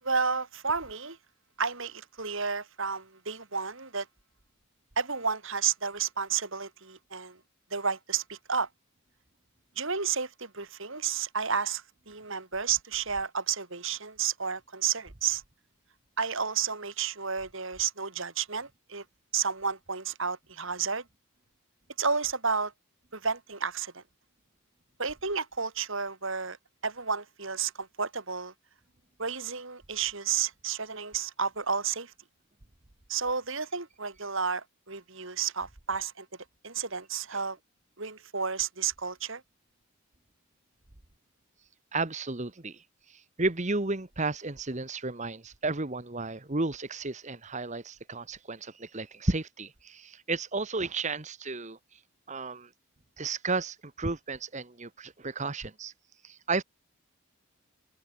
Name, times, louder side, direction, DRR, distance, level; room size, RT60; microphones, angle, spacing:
voice 1, 0.0-1.2 1.6-4.1 5.0-7.4 7.7-8.7 9.8-15.4 16.2-19.0 19.3-21.0 22.0-22.7 23.1-24.0 25.0-26.6 26.8-28.5 29.2-32.1 33.1-36.3 36.6-37.6 38.0-39.4, right 6 dB, 60° right, 2.9 m, -31 dB
voice 2, 41.9-51.8 52.3-52.7 53.2-55.9 56.2-56.6, right 3 dB, 30° right, 1.3 m, -33 dB
head